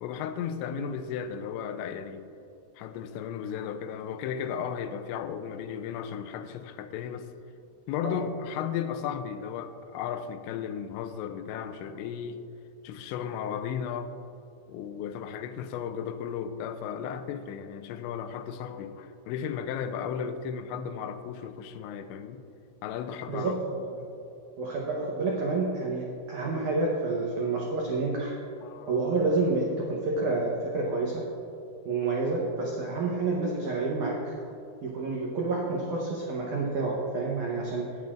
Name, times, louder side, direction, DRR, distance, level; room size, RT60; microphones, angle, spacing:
voice 1, 0.0-2.3 2.8-7.3 7.9-12.4 12.8-14.1 14.7-22.4 22.8-23.6 28.6-29.0, left 8 dB, 85° left, 9 dB, 2.9 m, -35 dB
voice 2, 23.3-24.1 24.6-26.0 26.3-28.3 28.9-31.2 31.9-34.2 34.8-37.8, right 3 dB, 90° right, -3 dB, 1.7 m, -29 dB
19.0 x 8.0 x 2.5 m, 2.7 s
omnidirectional pair, 5.1 m